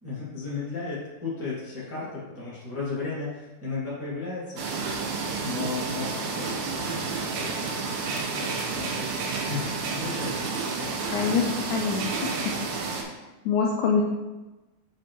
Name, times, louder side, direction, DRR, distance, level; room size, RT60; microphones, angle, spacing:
voice 1, 0.0-4.6 5.4-9.6 9.9-11.9, left 4 dB, 10° right, -8 dB, 0.9 m, -35 dB
sound 1, 4.6-13.0, right 4 dB, 70° right, 1.8 m, -30 dB
voice 2, 11.1-13.0 13.4-14.0, left 5 dB, 80° left, 1 dB, 1.8 m, -26 dB
7.9 x 5.0 x 3.0 m, 1.1 s
omnidirectional pair, 3.9 m